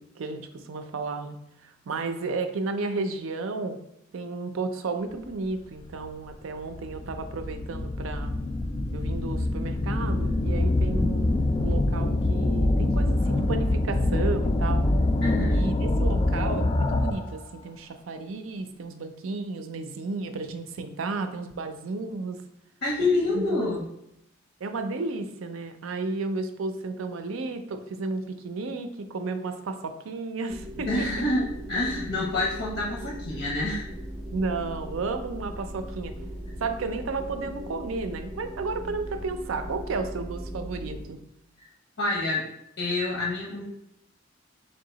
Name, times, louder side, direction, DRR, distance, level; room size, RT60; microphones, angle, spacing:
voice 1, 0.0-1.4 1.6-3.8 4.1-8.3 8.9-14.8 15.5-22.4 23.3-23.7 24.6-31.1 34.3-36.1 36.6-41.2, right 3 dB, 75° right, 8 dB, 0.4 m, -33 dB
sound 1, 5.9-6.0 6.7-17.4, left 2 dB, 25° left, 0.3 m, -25 dB
voice 2, 15.2-15.6 22.8-23.8 30.8-33.9 42.0-42.5 42.8-43.6, left 2 dB, 80° left, -3 dB, 0.8 m, -27 dB
sound 2, 30.5-41.1, equal, 20° right, 0.6 m, -39 dB
3.6 x 2.7 x 3.9 m, 0.79 s
head